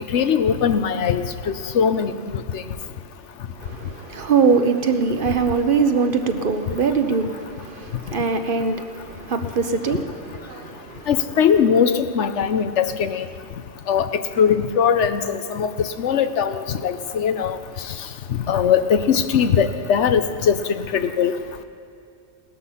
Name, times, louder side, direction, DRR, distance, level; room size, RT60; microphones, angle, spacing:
voice 1, 0.1-1.2 1.7-2.1 11.1-13.2 13.9-14.0 14.4-15.7 16.0-17.6 18.5-20.5 20.9-21.3, left 7 dB, 75° left, 1.1 m, -20 dB
voice 2, 3.6-10.0 10.5-11.1, right 5 dB, 50° right, 1.0 m, -22 dB
18.0 x 13.0 x 5.6 m
omnidirectional pair, 1.2 m